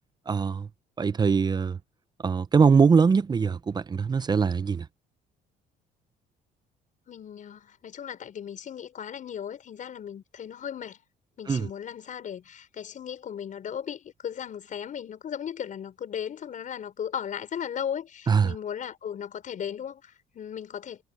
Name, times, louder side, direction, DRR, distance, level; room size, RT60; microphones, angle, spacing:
voice 1, 0.3-0.7 1.0-1.8 2.2-4.9 11.5-11.7 18.3-18.5, right 5 dB, 25° right, 0.6 m, -22 dB
voice 2, 7.1-11.0 11.4-21.0, left 8 dB, 50° left, 5.6 m, -36 dB
cardioid pair, 110°, 17 cm